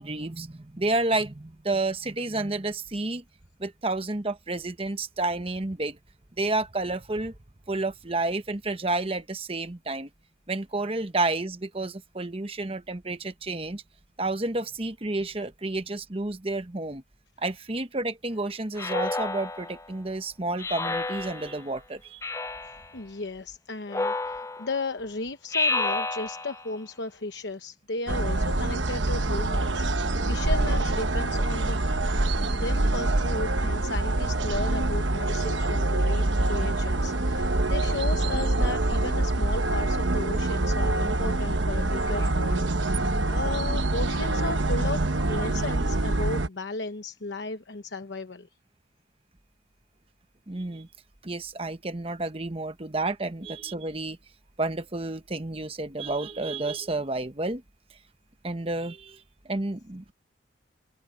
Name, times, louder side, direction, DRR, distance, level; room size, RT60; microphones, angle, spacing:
voice 1, 0.0-3.2 3.6-6.0 6.4-7.3 7.7-10.1 10.5-13.8 14.2-17.0 17.4-22.2 50.5-50.9 51.2-54.2 54.6-57.6 58.4-59.2 59.5-60.1, right 2 dB, 30° right, 1.1 m, -30 dB
Speech synthesizer, 18.8-19.9 20.6-21.6 22.2-22.9 23.9-24.8 25.5-26.7, left 2 dB, 15° left, 0.5 m, -30 dB
voice 2, 22.9-32.2 32.5-48.5, left 3 dB, 65° left, 1.0 m, -35 dB
sound 1, 28.1-46.5, right 2 dB, 75° right, 1.2 m, -25 dB
head